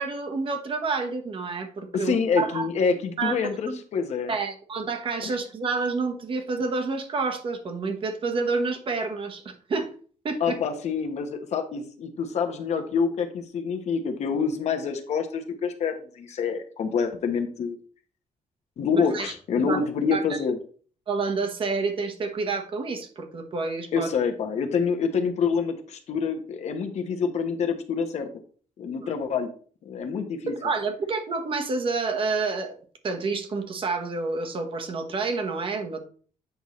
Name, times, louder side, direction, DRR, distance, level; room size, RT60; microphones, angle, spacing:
voice 1, 0.0-2.7 3.2-3.8 4.3-9.9 10.2-10.6 18.9-19.8 20.1-20.4 21.1-24.1 30.6-32.7 33.0-36.0, right 4 dB, 40° right, 6 dB, 1.1 m, -29 dB
voice 2, 1.9-4.3 5.2-5.3 10.4-17.8 18.8-20.6 23.9-28.3 28.8-29.5 29.8-30.5, left 6 dB, 60° left, 6 dB, 1.0 m, -27 dB
8.1 x 5.4 x 3.1 m, 0.43 s
cardioid pair, 145°, 13 cm